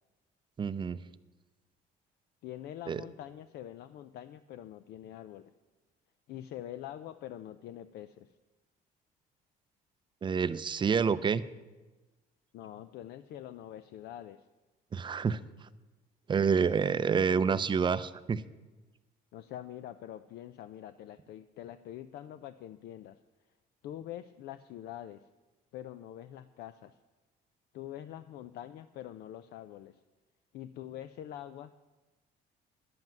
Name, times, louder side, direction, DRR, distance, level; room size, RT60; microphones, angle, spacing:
voice 1, 0.6-1.0 2.9-3.0 10.2-11.4 14.9-15.4 16.3-18.4, right 6 dB, 30° right, 14 dB, 0.5 m, -28 dB
voice 2, 2.4-5.5 6.3-8.3 12.5-14.4 19.3-23.2 23.8-25.2 25.7-27.0 27.7-30.0 30.5-31.7, left 12 dB, 70° left, 12 dB, 0.5 m, -45 dB
10.5 x 7.8 x 9.2 m, 1.2 s
cardioid pair, 110°, 17 cm